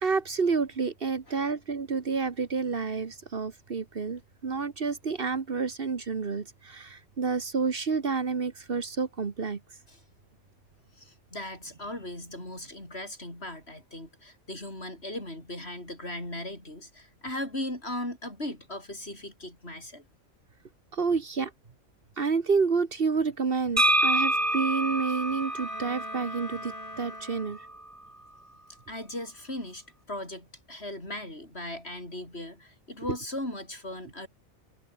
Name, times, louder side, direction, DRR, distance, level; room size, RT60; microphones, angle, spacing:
voice 1, 0.0-9.6 20.9-21.5 22.2-27.6, right 5 dB, 50° right, 1.5 m, -29 dB
voice 2, 10.9-20.0 28.9-34.3, left 1 dB, 60° left, 8.5 m, -38 dB
Bowed string instrument, 23.7-27.9, left 2 dB, 25° left, 2.9 m, -46 dB
sound 1, 23.8-27.5, right 1 dB, 15° right, 2.1 m, -27 dB
omnidirectional pair, 1.2 m